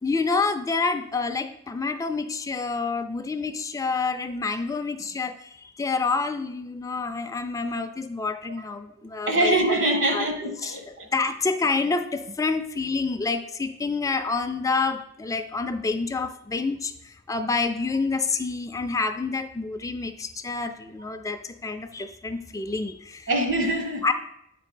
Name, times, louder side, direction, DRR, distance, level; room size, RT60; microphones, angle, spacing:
voice 1, 0.0-9.8 10.1-10.3 10.6-23.3 24.0-24.1, left 4 dB, 15° left, 0.3 m, -28 dB
voice 2, 9.3-11.1 23.3-24.1, right 1 dB, 65° right, 1.4 m, -24 dB
9.1 x 4.2 x 4.9 m
head